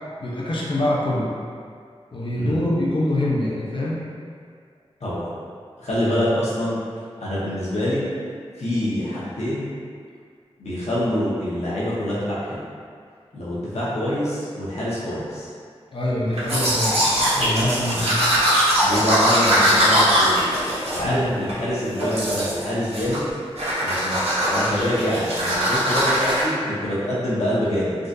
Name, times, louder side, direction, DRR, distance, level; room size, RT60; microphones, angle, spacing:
voice 1, 0.2-1.3 2.1-4.0 15.9-17.0 17.4-18.2 21.0-21.3, left 1 dB, 50° left, -5 dB, 0.7 m, -24 dB
voice 2, 5.8-6.8 7.2-8.0 8.6-9.7 10.6-12.6 13.3-15.5 17.8-18.0 18.8-20.4 20.9-23.3 23.8-24.2 24.4-27.9, equal, 90° left, -9 dB, 0.9 m, -25 dB
Domestic sounds home sounds, 16.4-21.6 22.0-22.6 22.9-23.3 23.6-26.4, equal, 70° right, 1.0 m, -21 dB
3.7 x 2.5 x 2.6 m, 2.1 s
wide cardioid pair, 75°, 11 cm